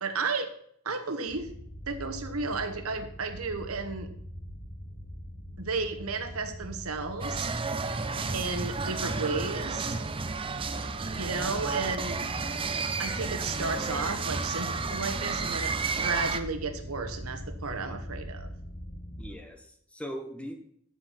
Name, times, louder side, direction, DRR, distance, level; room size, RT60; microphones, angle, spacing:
voice 1, 0.0-0.5 0.8-1.5 1.9-4.1 5.6-7.5 8.3-10.0 11.2-12.2 13.0-18.5, right 4 dB, 70° right, 7 dB, 1.2 m, -33 dB
sound 1, 1.3-19.3, equal, 45° left, 1.6 m, -42 dB
sound 2, 7.2-16.4, right 4 dB, 25° right, 0.5 m, -32 dB
voice 2, 7.9-8.3 19.2-20.5, equal, 5° left, 4 dB, 1.2 m, -40 dB
13.0 x 4.7 x 5.8 m, 0.67 s
head